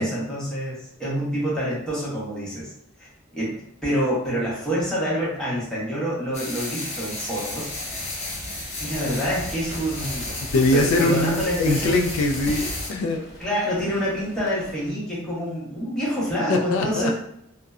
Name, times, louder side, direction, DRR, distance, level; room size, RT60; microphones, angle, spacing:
voice 1, 0.0-2.7 3.3-7.8 8.8-10.3 10.7-12.0 13.4-17.1, equal, 5° left, -8 dB, 0.9 m, -27 dB
sound 1, 6.3-12.9, left 2 dB, 30° left, 0.6 m, -32 dB
sound 2, 8.9-14.9, equal, 65° left, 0.8 m, -42 dB
voice 2, 10.5-13.2 16.5-17.1, left 2 dB, 85° left, 3 dB, 0.3 m, -22 dB
2.6 x 2.1 x 2.3 m, 0.77 s
head